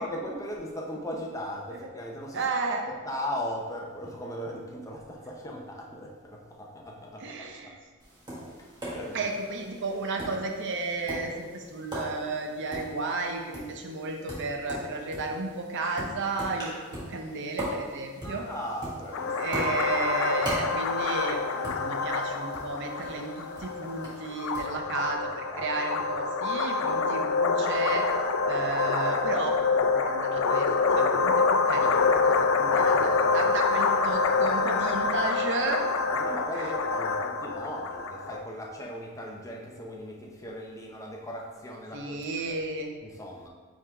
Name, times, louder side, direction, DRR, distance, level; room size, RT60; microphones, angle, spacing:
voice 1, 0.0-2.5 3.1-7.5 8.8-9.2 18.2-19.3 24.6-25.7 32.6-33.5 36.1-42.3 43.0-43.5, equal, 15° left, -1 dB, 0.6 m, -38 dB
voice 2, 2.3-2.8 7.2-7.8 9.1-16.7 17.1-18.4 19.4-28.0 28.4-35.9 36.5-36.7 41.9-42.9, right 3 dB, 55° right, 3 dB, 0.6 m, -33 dB
Tap, 8.0-24.7, equal, 20° right, 1.5 m, -40 dB
sound 1, 19.1-38.4, left 4 dB, 60° left, 0.4 m, -26 dB
5.5 x 3.6 x 4.7 m, 1.4 s
head